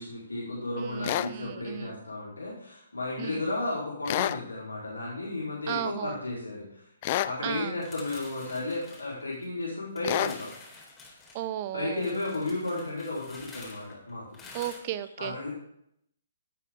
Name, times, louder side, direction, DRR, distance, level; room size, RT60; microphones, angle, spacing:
voice 1, 0.0-6.9 7.2-10.5 11.7-14.3 15.2-15.5, left 2 dB, 85° left, -6 dB, 4.7 m, -33 dB
voice 2, 0.8-2.0 3.2-3.5 5.7-6.2 7.4-7.8 11.3-12.2 14.5-15.5, right 12 dB, 35° right, 15 dB, 0.7 m, -35 dB
sound 1, 1.0-1.3 4.1-4.4 7.0-7.4 10.0-10.4, left 14 dB, 40° left, 0.5 m, -28 dB
sound 2, 7.8-9.6 10.0-11.4 11.9-14.8, left 3 dB, 15° left, 4.0 m, -48 dB
17.0 x 8.3 x 3.8 m, 0.74 s
figure-of-eight pair, 130°, 0 cm